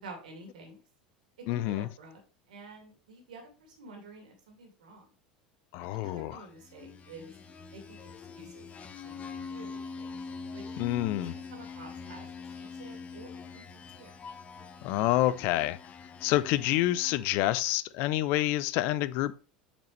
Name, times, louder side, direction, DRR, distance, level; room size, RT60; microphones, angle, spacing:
voice 1, 0.0-0.8 1.5-2.2 2.5-5.1 5.9-7.3 7.7-8.0 8.3-10.0 10.5-10.8 11.1-14.1, right 3 dB, 70° right, 2.5 m, -50 dB
voice 2, 1.5-1.9 5.7-6.4 10.8-11.4 14.8-15.8 16.2-19.4, left 15 dB, 55° left, 0.5 m, -28 dB
sound 1, 6.6-17.4, left 5 dB, 30° left, 0.9 m, -44 dB
8.4 x 6.0 x 3.2 m
figure-of-eight pair, 75°, 4 cm